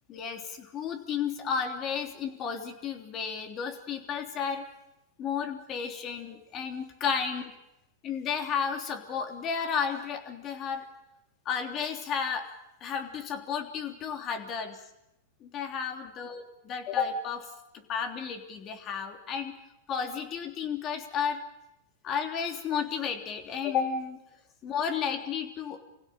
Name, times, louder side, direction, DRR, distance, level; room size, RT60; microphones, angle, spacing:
voice 1, 0.1-4.7 5.2-7.5 8.0-10.9 11.4-12.4 12.8-14.8 15.4-17.5 17.7-19.5 19.9-21.4 22.0-24.2 24.6-25.8, left 6 dB, 35° left, 6 dB, 3.3 m, -32 dB
25.5 x 16.5 x 9.1 m, 0.88 s
hypercardioid pair, 125°, 0 cm